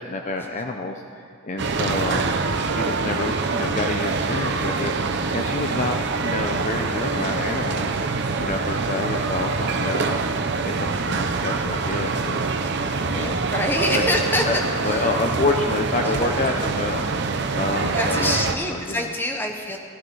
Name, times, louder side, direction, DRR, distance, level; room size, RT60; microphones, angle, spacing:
voice 1, 0.0-2.4 2.7-4.9 5.3-8.0 8.4-10.2 10.6-12.5 13.0-13.4 13.9-14.6 14.8-17.0 17.5-18.4 18.7-19.1, left 2 dB, 35° left, 3 dB, 0.5 m, -28 dB
sound 1, 1.6-18.6, right 4 dB, 50° right, 0.6 m, -25 dB
voice 2, 6.4-7.1 13.1-14.4 14.8-15.1 16.0-16.6 18.0-19.8, left 1 dB, 10° left, 3 dB, 0.9 m, -27 dB
15.0 x 13.5 x 3.9 m, 2.4 s
head